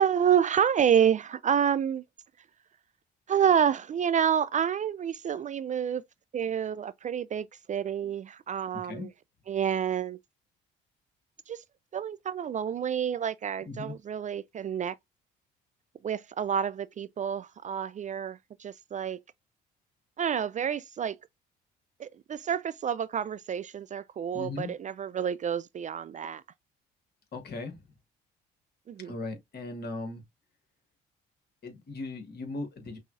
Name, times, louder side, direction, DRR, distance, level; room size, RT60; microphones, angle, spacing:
voice 1, 0.0-2.0 3.3-6.0 6.3-9.1 9.5-10.2 11.5-11.6 11.9-14.9 16.0-19.2 20.2-21.2 22.0-26.4 28.9-29.1, right 8 dB, 35° right, 0.4 m, -28 dB
voice 2, 24.3-24.7 27.3-27.8 29.0-30.2 31.6-33.0, left 3 dB, 50° left, 1.6 m, -38 dB
5.5 x 2.3 x 2.4 m
hypercardioid pair, 60°, 21 cm